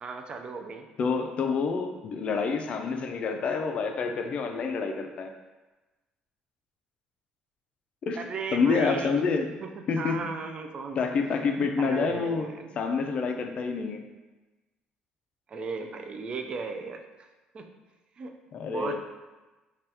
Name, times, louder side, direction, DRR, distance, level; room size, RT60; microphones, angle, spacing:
voice 1, 0.0-0.9 8.2-9.1 9.6-11.0 11.5-12.8 15.5-17.3 17.5-17.7 18.2-18.4 18.6-19.0, right 4 dB, 40° right, 5 dB, 0.3 m, -36 dB
voice 2, 1.0-5.3 8.0-8.2 8.5-9.5 9.9-10.3 11.0-12.5 12.8-14.0 18.5-19.0, left 5 dB, 45° left, 5 dB, 0.3 m, -28 dB
2.7 x 2.3 x 3.3 m, 1.2 s
cardioid pair, 110°, 3 cm